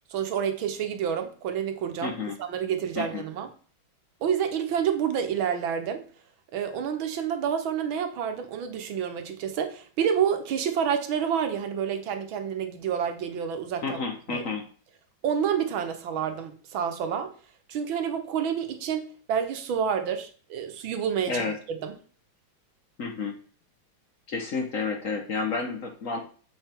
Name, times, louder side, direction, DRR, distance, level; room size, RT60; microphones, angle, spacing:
voice 1, 0.1-3.5 4.2-6.0 6.5-14.0 14.3-14.4 15.2-17.3 17.7-21.9, right 8 dB, 80° right, 1.8 m, -29 dB
voice 2, 2.0-2.4 2.9-3.2 13.8-14.6 21.3-21.6 23.0-23.3 24.3-26.2, left 4 dB, 50° left, 1.2 m, -30 dB
7.5 x 5.6 x 4.5 m
omnidirectional pair, 2.2 m